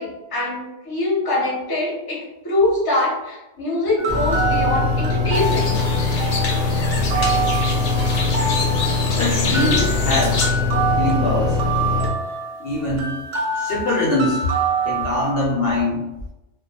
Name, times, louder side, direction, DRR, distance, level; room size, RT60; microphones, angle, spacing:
voice 1, 0.0-5.7 9.2-9.7, left 2 dB, 25° left, -4 dB, 0.6 m, -24 dB
sound 1, 4.0-15.3, right 4 dB, 65° right, 0.7 m, -26 dB
sound 2, 4.1-12.1, left 3 dB, 40° right, 0.4 m, -22 dB
sound 3, 5.3-10.5, left 3 dB, 90° left, 0.9 m, -27 dB
voice 2, 9.2-10.4 11.0-11.6 12.6-13.1 13.6-14.5 14.9-16.1, left 2 dB, 65° left, -3 dB, 0.7 m, -22 dB
2.2 x 2.1 x 2.8 m, 0.98 s
omnidirectional pair, 1.2 m